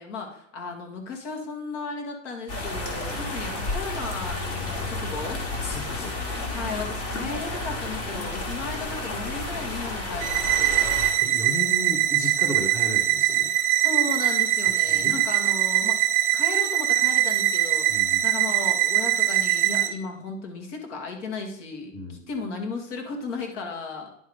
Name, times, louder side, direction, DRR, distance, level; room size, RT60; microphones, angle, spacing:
voice 1, 0.0-5.4 6.5-11.0 13.7-16.0 16.3-24.1, left 4 dB, 60° left, 2 dB, 2.0 m, -35 dB
sound 1, 2.5-11.1, left 2 dB, 45° left, 2.1 m, -31 dB
voice 2, 5.5-6.6 11.2-13.5 14.9-15.1 17.9-18.2 21.9-22.2, left 1 dB, 5° left, 1 dB, 0.7 m, -34 dB
sound 2, 10.2-19.9, right 13 dB, 20° right, 0.4 m, -22 dB
10.5 x 3.6 x 4.8 m, 0.76 s
supercardioid pair, 150°, 40 cm